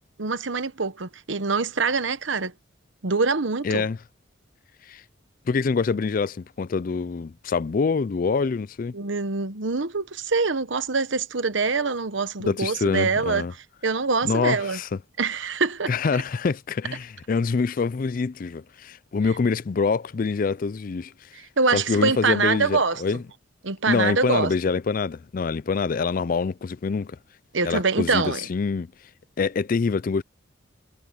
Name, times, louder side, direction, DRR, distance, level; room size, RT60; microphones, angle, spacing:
voice 1, 0.2-2.5 3.0-3.8 8.9-13.4 13.8-14.8 15.2-15.9 21.4-23.0 23.6-24.5 27.5-28.4, right 4 dB, 75° right, 1.1 m, -24 dB
voice 2, 3.6-4.0 4.9-5.0 5.5-8.9 12.4-13.5 14.2-14.9 15.9-21.3 21.7-23.2 23.9-27.2 27.6-28.9 29.4-30.2, left 4 dB, 45° left, 0.4 m, -25 dB
head